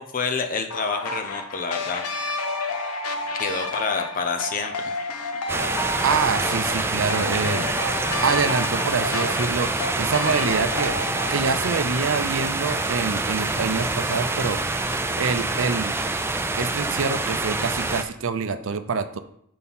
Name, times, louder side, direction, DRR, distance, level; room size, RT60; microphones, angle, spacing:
voice 1, 0.0-2.0 3.4-4.7 7.3-7.5, left 4 dB, 40° left, 5 dB, 0.7 m, -28 dB
sound 1, 0.7-11.5, left 2 dB, 90° left, 0.7 m, -30 dB
sound 2, 5.5-18.0, right 2 dB, 10° right, 0.4 m, -26 dB
voice 2, 6.0-7.7 8.2-9.7 10.0-11.0 11.3-14.6 15.2-15.9 16.6-19.2, right 5 dB, 60° right, 10 dB, 0.5 m, -25 dB
5.5 x 4.4 x 5.4 m, 0.71 s
head